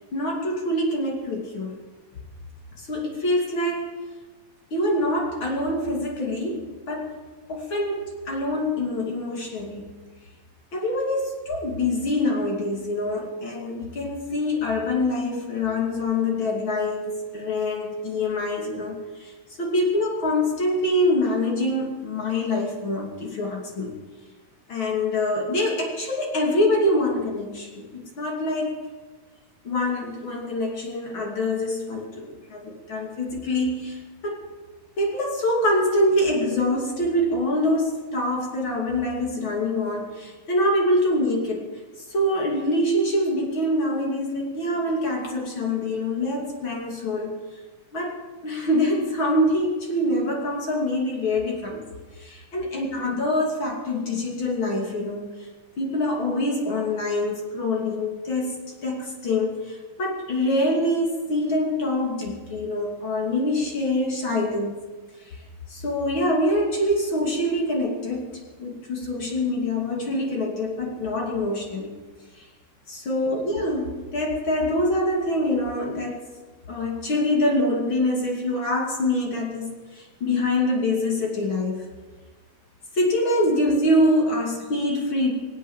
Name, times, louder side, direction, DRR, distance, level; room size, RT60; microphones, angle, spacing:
voice 1, 0.1-1.8 2.9-3.9 4.7-7.2 7.5-9.9 10.7-19.3 19.6-23.9 24.7-28.8 29.6-34.4 35.0-41.6 42.1-47.3 47.9-51.8 52.2-55.3 55.8-64.7 65.3-65.4 65.7-71.9 72.4-72.5 72.9-76.3 76.7-81.8 82.9-85.3, left 1 dB, 35° left, -1 dB, 3.2 m, -25 dB
23.0 x 8.3 x 7.5 m, 1.3 s
omnidirectional pair, 4.1 m